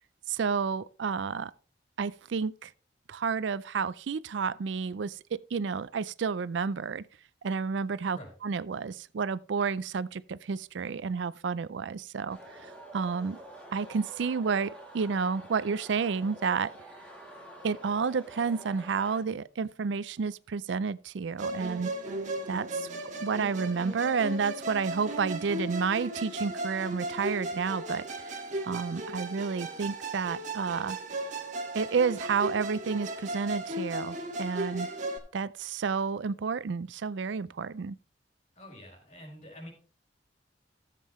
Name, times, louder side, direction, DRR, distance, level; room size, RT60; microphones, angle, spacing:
voice 1, 0.3-1.5 2.0-2.7 3.1-7.1 7.4-12.4 12.9-13.4 13.7-16.7 17.6-21.9 22.5-22.9 23.2-28.3 28.6-31.0 31.7-34.9 35.3-38.0, right 5 dB, 75° right, 0.4 m, -30 dB
sound 1, 12.3-19.2, right 1 dB, 5° left, 2.2 m, -48 dB
Musical instrument, 21.4-35.2, right 1 dB, 40° right, 1.7 m, -36 dB
voice 2, 38.6-39.7, equal, 40° left, 4.5 m, -46 dB
14.0 x 7.5 x 3.1 m
head